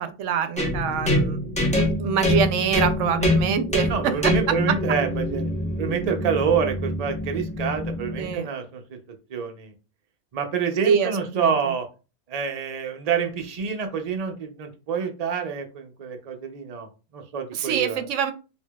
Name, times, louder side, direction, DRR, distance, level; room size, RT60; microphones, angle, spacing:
voice 1, 0.0-1.4 1.9-4.5 8.2-8.5 10.8-11.7 17.5-18.3, right 7 dB, 90° right, 10 dB, 0.9 m, -25 dB
sound 1, 0.6-8.3, left 1 dB, 5° left, 0.9 m, -25 dB
voice 2, 3.9-5.5 5.8-8.8 9.3-9.7 10.3-11.9 12.3-16.9 17.1-18.0, right 6 dB, 45° right, 5 dB, 0.6 m, -27 dB
4.6 x 2.7 x 2.3 m, 0.31 s
omnidirectional pair, 1.2 m